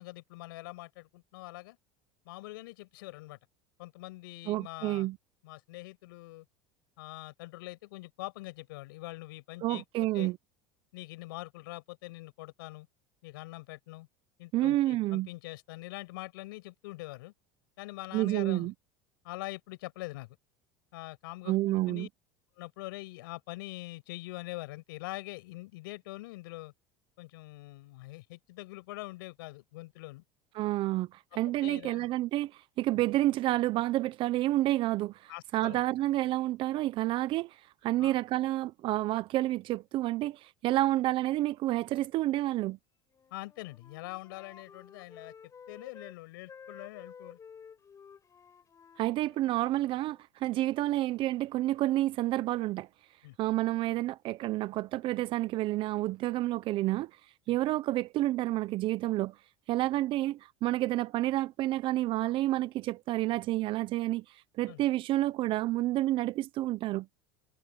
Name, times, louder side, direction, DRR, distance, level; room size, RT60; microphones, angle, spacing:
voice 1, 0.0-1.8 2.3-3.4 3.8-5.1 5.4-6.5 7.0-9.8 10.1-10.3 10.9-12.9 13.2-14.1 14.4-17.3 17.8-18.7 19.2-20.4 20.9-22.1 22.6-26.7 27.2-30.2 31.3-32.1 35.3-35.8 38.0-38.2 43.3-45.3 45.7-47.4 53.2-53.4 57.5-57.6 64.7-64.8, left 20 dB, 85° left, 7.0 m, -44 dB
voice 2, 4.5-5.2 9.6-10.4 14.5-15.3 18.1-18.7 21.5-22.1 30.5-42.8 49.0-52.9 53.4-57.1 57.5-59.4 59.7-67.2, right 16 dB, 50° right, 0.6 m, -29 dB
Wind instrument woodwind instrument, 43.1-46.2 46.5-50.2, left 6 dB, 30° left, 7.6 m, -53 dB
supercardioid pair, 110°, 11 cm